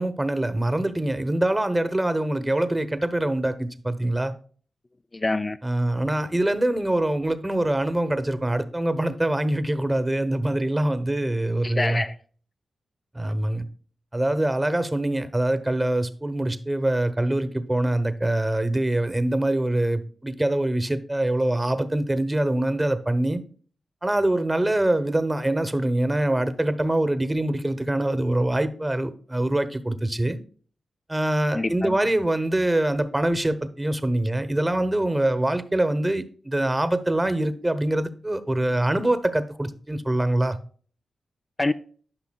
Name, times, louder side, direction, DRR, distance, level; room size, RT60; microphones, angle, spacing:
voice 1, 0.0-4.3 5.6-12.0 13.1-13.7 14.1-23.4 24.0-30.4 31.1-40.6, right 1 dB, 20° right, 0.9 m, -24 dB
voice 2, 5.1-5.6 11.6-12.2 31.5-32.0 41.6-41.7, left 2 dB, 30° left, 0.4 m, -26 dB
12.0 x 5.7 x 2.3 m
cardioid pair, 60°, 0 cm